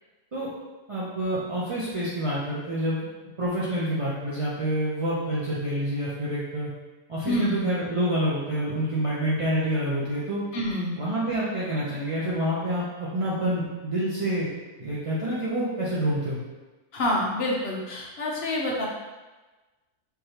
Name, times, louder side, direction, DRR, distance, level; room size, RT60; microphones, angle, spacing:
voice 1, 0.9-3.0 3.4-6.7 7.1-10.4 11.0-14.5 14.8-16.4, right 1 dB, 40° right, -9 dB, 0.4 m, -27 dB
voice 2, 7.3-7.6 10.5-11.0 16.9-18.9, left 1 dB, 55° left, -2 dB, 0.8 m, -27 dB
3.7 x 3.2 x 2.8 m, 1.2 s
omnidirectional pair, 1.5 m